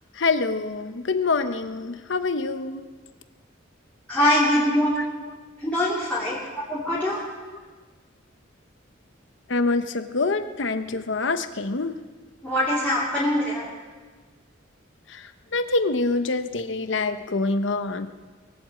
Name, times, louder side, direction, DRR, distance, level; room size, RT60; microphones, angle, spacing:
voice 1, 0.1-2.8 5.0-5.1 9.5-11.9 15.1-18.1, left 3 dB, 65° left, 10 dB, 0.9 m, -26 dB
voice 2, 4.1-4.9 5.6-7.2 12.4-13.6, left 1 dB, 5° left, -9 dB, 2.9 m, -23 dB
22.0 x 8.1 x 7.6 m, 1.4 s
head